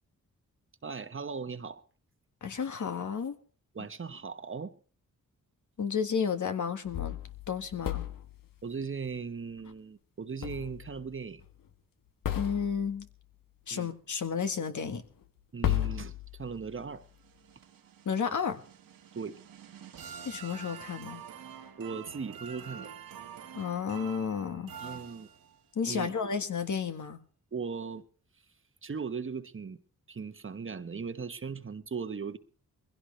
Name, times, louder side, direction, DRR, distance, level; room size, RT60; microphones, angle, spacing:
voice 1, 0.8-1.8 3.7-4.7 8.6-11.4 13.7-13.9 15.5-17.1 19.1-19.4 21.8-22.9 24.8-25.3 25.8-26.3 27.5-28.0 28.8-29.8 30.1-32.4, right 5 dB, 40° right, 1.1 m, -38 dB
voice 2, 2.4-3.3 5.8-7.2 7.5-8.1 12.3-13.1 13.7-15.0 18.0-18.6 20.2-21.2 23.5-24.7 25.7-27.2, left 6 dB, 60° left, 1.6 m, -32 dB
sound 1, 6.9-8.4 10.4-11.1 11.4-11.5 12.2-13.0 14.9-15.0 15.6-16.8, left 12 dB, 80° left, 1.3 m, -34 dB
sound 2, 16.8-25.7, right 8 dB, 90° right, 1.8 m, -47 dB
21.5 x 16.0 x 3.2 m
cardioid pair, 60°, 33 cm